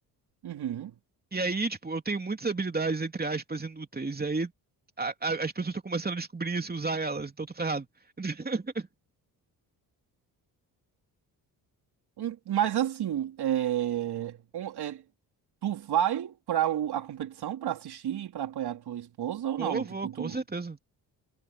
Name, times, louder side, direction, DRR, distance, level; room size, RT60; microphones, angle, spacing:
voice 1, 0.4-0.9 12.2-15.0 15.6-20.4, right 11 dB, 65° right, 3.9 m, -30 dB
voice 2, 1.3-4.5 5.0-7.9 8.2-8.9 19.6-20.8, right 3 dB, 20° right, 3.1 m, -31 dB
cardioid pair, 80°, 41 cm